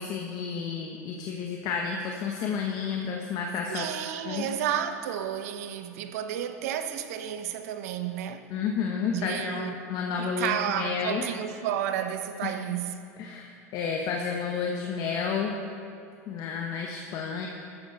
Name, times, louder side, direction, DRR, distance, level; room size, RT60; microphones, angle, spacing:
voice 1, 0.0-3.9 4.2-4.5 8.5-11.2 12.4-12.6 13.2-15.5 16.3-17.5, left 6 dB, 50° left, 1.3 m, -31 dB
voice 2, 3.7-8.5 9.1-9.7 10.2-12.9, right 10 dB, 70° right, 1.0 m, -31 dB
15.5 x 13.5 x 4.3 m
hypercardioid pair, 85°, 8 cm